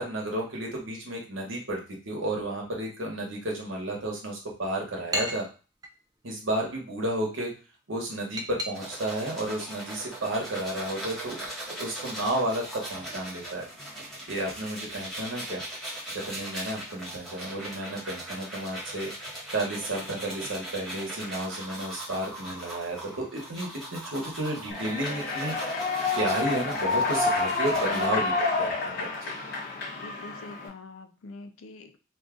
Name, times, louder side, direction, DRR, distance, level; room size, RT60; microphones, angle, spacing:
voice 1, 0.0-5.5 6.2-7.5 7.9-11.4 11.8-13.6 14.3-15.6 16.1-19.1 19.5-25.7 26.2-29.3, right 1 dB, 70° right, 0 dB, 1.1 m, -32 dB
sound 1, 4.3-14.3, equal, 20° right, 0.4 m, -42 dB
sound 2, 8.7-28.1, right 1 dB, ahead, 0.8 m, -40 dB
Human voice / Clapping / Cheering, 24.7-30.7, left 3 dB, 45° left, 0.8 m, -29 dB
voice 2, 27.9-28.2 30.0-32.0, left 3 dB, 80° left, 8 dB, 0.4 m, -43 dB
2.5 x 2.4 x 3.6 m, 0.34 s
head